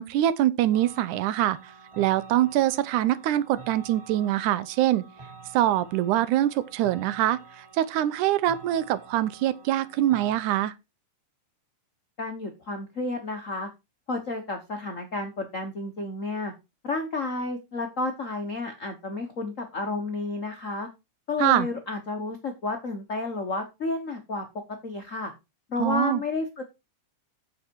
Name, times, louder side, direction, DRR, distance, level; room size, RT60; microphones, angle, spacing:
voice 1, 0.0-5.0 5.5-10.7 21.4-21.7 25.8-26.2, right 13 dB, 80° right, 2.2 m, -24 dB
sound 1, 0.7-10.3, right 4 dB, 15° right, 1.1 m, -48 dB
voice 2, 12.2-13.7 14.1-16.5 16.8-20.9 21.3-24.4 24.8-25.3 25.7-26.6, left 3 dB, 85° left, 0.7 m, -31 dB
8.3 x 6.6 x 4.6 m
omnidirectional pair, 3.5 m